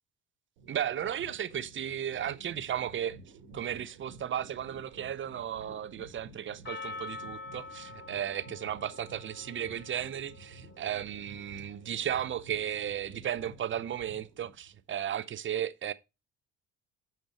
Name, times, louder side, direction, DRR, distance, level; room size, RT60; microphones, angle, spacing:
sound 1, 0.6-14.8, right 3 dB, 70° right, 1.6 m, -52 dB
voice 1, 0.7-3.2 3.5-15.9, right 10 dB, 30° right, 0.7 m, -35 dB
Percussion, 6.7-11.0, left 3 dB, 30° left, 1.6 m, -45 dB
8.6 x 6.6 x 3.0 m
figure-of-eight pair, 55°, 38 cm